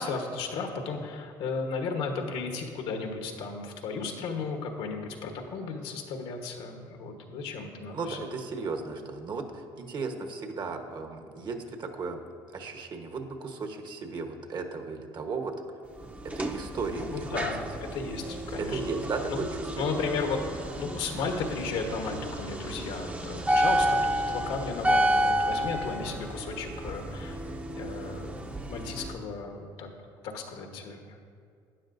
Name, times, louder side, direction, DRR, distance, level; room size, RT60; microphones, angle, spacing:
voice 1, 0.0-8.2 16.9-17.6 17.9-18.8 19.3-19.5 19.8-27.4 27.8-29.9 30.2-31.2, left 4 dB, 75° left, 3 dB, 1.3 m, -34 dB
voice 2, 7.9-12.2 12.5-15.5 16.3-17.4 18.6-20.0, right 4 dB, 45° right, 5 dB, 1.2 m, -35 dB
sound 1, 16.0-29.1, right 1 dB, 15° right, 0.7 m, -31 dB
12.5 x 9.4 x 2.6 m, 2.2 s
supercardioid pair, 85°, 10 cm